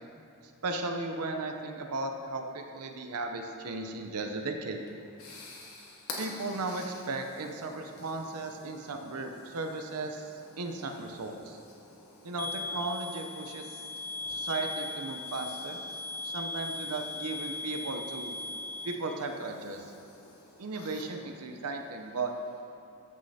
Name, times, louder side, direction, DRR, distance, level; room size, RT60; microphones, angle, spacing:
voice 1, 0.6-4.8 6.2-10.3 10.6-11.6 12.2-13.8 14.3-15.8 16.2-18.4 18.8-19.9 20.6-22.3, right 3 dB, 90° right, 5 dB, 0.6 m, -36 dB
sound 1, 4.6-22.6, left 2 dB, 70° left, 1.4 m, -50 dB
sound 2, 12.4-18.9, left 2 dB, 40° left, 0.7 m, -38 dB
14.0 x 6.4 x 2.8 m, 2.6 s
head